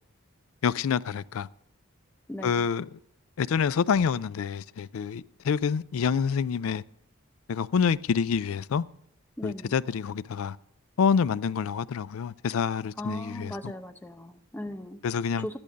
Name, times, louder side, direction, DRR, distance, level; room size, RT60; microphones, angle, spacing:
voice 1, 0.6-1.5 2.4-2.9 3.4-6.8 7.5-8.8 9.4-10.6 11.0-13.7 15.0-15.5, left 6 dB, 75° left, 0.4 m, -27 dB
voice 2, 2.3-2.7 9.4-9.8 13.0-15.0 15.4-15.6, left 1 dB, 10° left, 0.6 m, -38 dB
12.5 x 10.5 x 5.1 m
head